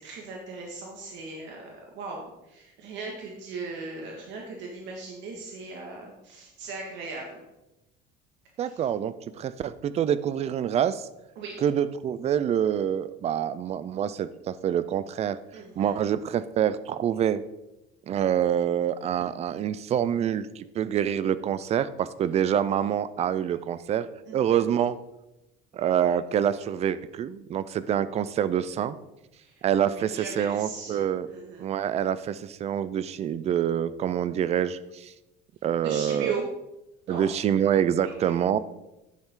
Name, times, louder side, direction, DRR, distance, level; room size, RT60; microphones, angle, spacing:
voice 1, 0.0-7.4 8.6-8.8 11.4-11.5 15.5-15.9 24.3-24.7 29.4-31.7 35.8-36.4 37.1-37.2 38.0-38.3, right 4 dB, 60° right, 0 dB, 1.9 m, -38 dB
voice 2, 8.6-11.1 11.6-15.4 15.8-17.4 18.1-24.1 24.3-25.0 25.7-29.0 29.6-31.3 31.6-35.1 35.6-36.3 37.1-38.6, right 9 dB, 30° right, 15 dB, 0.4 m, -26 dB
10.5 x 8.9 x 3.7 m, 0.94 s
cardioid pair, 160°, 21 cm